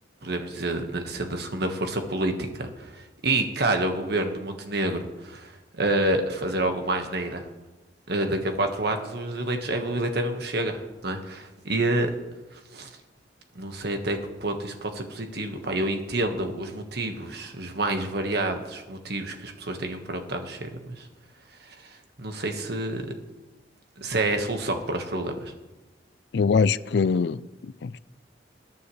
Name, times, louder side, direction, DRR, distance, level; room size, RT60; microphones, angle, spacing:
voice 1, 0.2-7.4 8.1-12.1 12.5-12.9 13.5-21.1 21.7-23.0 24.0-25.5, right 2 dB, 65° right, 5 dB, 1.5 m, -28 dB
voice 2, 26.3-28.0, left 5 dB, 70° left, 18 dB, 0.4 m, -23 dB
20.5 x 9.3 x 3.3 m, 1.1 s
head